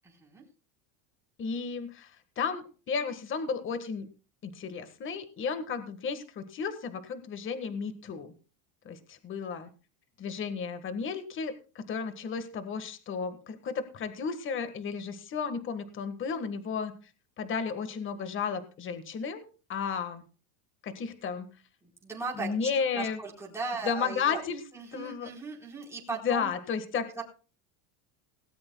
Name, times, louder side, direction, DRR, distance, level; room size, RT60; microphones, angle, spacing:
voice 1, 1.4-2.1 2.4-4.1 4.4-8.3 8.8-9.7 10.2-16.9 17.4-19.4 19.7-20.2 20.8-21.5 22.4-23.2 23.8-24.6 24.9-25.3 26.2-27.1, left 6 dB, 25° left, 9 dB, 1.5 m, -33 dB
voice 2, 21.8-24.4 24.7-26.5 27.1-27.2, right 4 dB, 5° right, -2 dB, 4.1 m, -38 dB
18.0 x 17.5 x 2.3 m, 0.36 s
cardioid pair, 165°, 49 cm